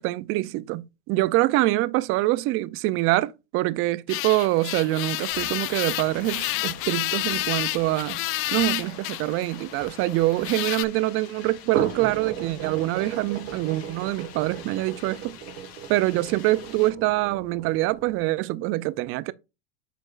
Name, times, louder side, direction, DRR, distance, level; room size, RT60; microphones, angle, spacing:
voice 1, 0.0-8.2 8.5-15.4 15.9-19.3, right 18 dB, 45° right, 0.5 m, -25 dB
sound 1, 4.1-10.8, left 20 dB, 45° left, 0.4 m, -30 dB
sound 2, 5.3-16.9, left 8 dB, 85° left, 2.2 m, -46 dB
sound 3, 6.2-10.4 11.5-18.3, right 9 dB, 65° right, 1.7 m, -36 dB
7.7 x 5.0 x 2.4 m
supercardioid pair, 115°, 31 cm